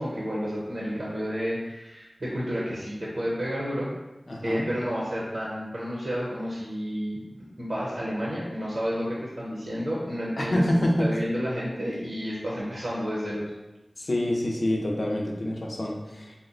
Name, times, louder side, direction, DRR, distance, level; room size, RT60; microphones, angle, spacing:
voice 1, 0.0-3.9 4.4-7.2 7.6-13.5, equal, 75° right, -6 dB, 0.8 m, -30 dB
voice 2, 4.3-4.6 10.4-10.9 14.0-16.3, left 1 dB, 65° left, -1 dB, 0.6 m, -27 dB
2.8 x 2.1 x 3.8 m, 0.98 s
wide cardioid pair, 55°, 0 cm